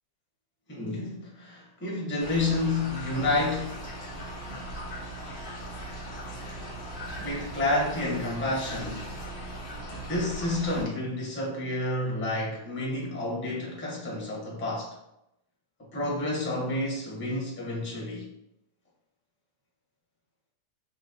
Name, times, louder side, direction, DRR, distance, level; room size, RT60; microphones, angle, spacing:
voice 1, 0.7-3.8 6.9-9.0 10.1-15.0 15.9-18.3, left 2 dB, 10° left, -4 dB, 0.5 m, -30 dB
sound 1, 2.2-10.8, right 1 dB, 45° left, 0.7 m, -39 dB
5.7 x 2.2 x 2.5 m, 0.83 s
omnidirectional pair, 2.0 m